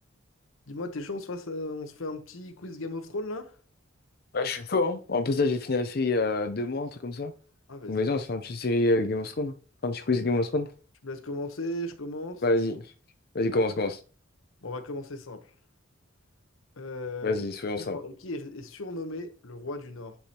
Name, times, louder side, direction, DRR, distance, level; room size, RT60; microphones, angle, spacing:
voice 1, 0.7-3.6 7.7-8.1 11.0-12.4 14.6-15.5 16.8-17.4 17.8-20.2, left 1 dB, 85° left, 1.0 m, -36 dB
voice 2, 4.3-7.3 7.9-9.5 9.8-10.7 12.4-12.8 13.3-14.0 17.2-18.0, left 2 dB, 50° left, 0.6 m, -27 dB
10.0 x 4.8 x 2.9 m
head